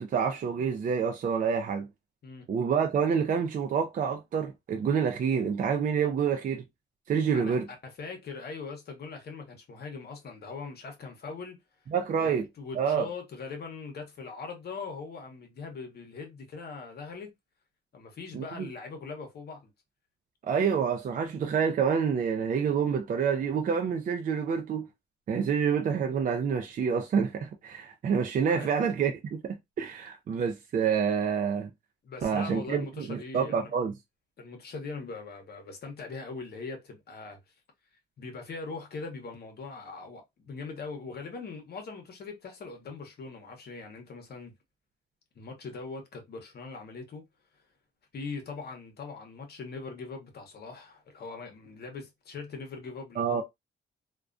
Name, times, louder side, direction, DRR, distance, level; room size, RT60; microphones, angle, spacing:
voice 1, 0.0-1.9 2.5-6.6 7.1-7.7 11.9-12.5 12.7-13.1 18.3-18.7 20.4-24.9 25.3-31.7 32.2-33.9 53.2-53.4, right 6 dB, 45° right, 0.4 m, -28 dB
voice 2, 7.8-11.6 12.2-12.3 12.6-17.3 17.9-19.7 28.5-28.7 32.0-33.8 34.4-37.5 38.2-44.5 45.3-47.3 47.5-47.6 48.1-53.4, left 4 dB, 55° left, 0.8 m, -41 dB
2.3 x 2.2 x 2.4 m
cardioid pair, 90°, 20 cm